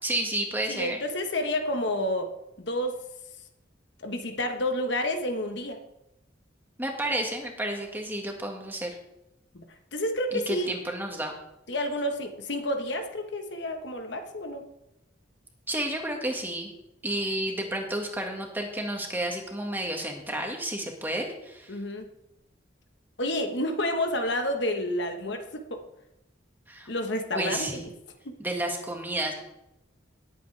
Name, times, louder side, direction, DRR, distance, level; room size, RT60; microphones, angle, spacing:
voice 1, 0.0-1.0 6.8-8.9 10.3-11.3 15.7-16.7 17.0-21.7 26.7-26.9 27.3-27.9 28.4-29.3, right 1 dB, 10° right, 2 dB, 1.8 m, -31 dB
voice 2, 0.7-2.3 2.6-3.0 4.0-5.8 9.5-9.6 9.9-10.7 11.7-14.6 21.7-22.1 23.2-25.8 26.9-27.9 28.2-28.4, left 1 dB, 65° left, 5 dB, 1.3 m, -30 dB
19.0 x 8.3 x 3.4 m, 0.88 s
head